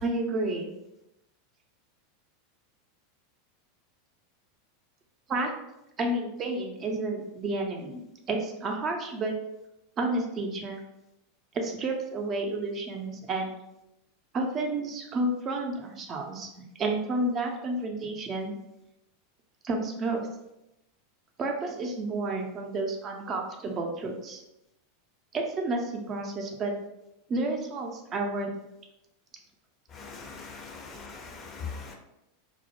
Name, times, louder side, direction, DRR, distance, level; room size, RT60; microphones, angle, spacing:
voice 1, 0.0-0.7 5.3-5.5 6.0-9.3 10.0-10.8 11.5-13.5 14.3-16.5 16.8-18.6 19.6-20.2 21.4-24.4 25.3-26.7 27.3-28.5, right 2 dB, 35° right, 2 dB, 0.5 m, -30 dB
voice 2, 29.9-31.9, left 5 dB, 35° left, 2 dB, 0.5 m, -41 dB
2.2 x 2.1 x 2.9 m, 0.88 s
hypercardioid pair, 90°, 0 cm